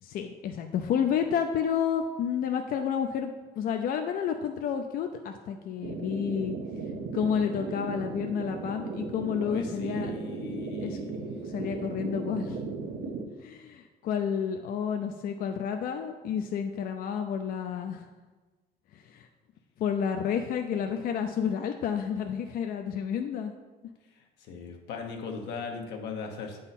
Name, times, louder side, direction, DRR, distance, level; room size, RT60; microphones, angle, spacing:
voice 1, 0.0-3.3 3.6-6.6 7.1-10.1 10.8-11.0 11.4-12.6 13.4-18.0 18.9-19.3 19.8-23.5, left 7 dB, 60° left, 5 dB, 0.4 m, -30 dB
sound 1, 5.8-13.2, right 4 dB, 80° right, 0.7 m, -36 dB
voice 2, 9.4-11.2 24.5-26.6, left 5 dB, 85° left, 3 dB, 1.0 m, -38 dB
7.9 x 3.8 x 4.1 m, 1.3 s
cardioid pair, 110°, 17 cm